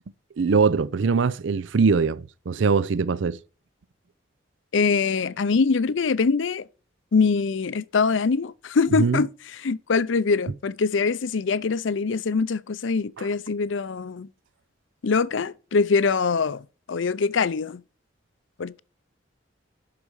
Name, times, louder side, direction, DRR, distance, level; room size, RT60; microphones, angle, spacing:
voice 1, 0.4-3.4 9.0-9.2 13.2-13.3, right 5 dB, 65° right, 0.5 m, -22 dB
voice 2, 4.7-6.7 7.1-14.3 15.0-17.8 18.6-18.8, left 4 dB, 70° left, 0.5 m, -23 dB
12.0 x 4.8 x 4.7 m
head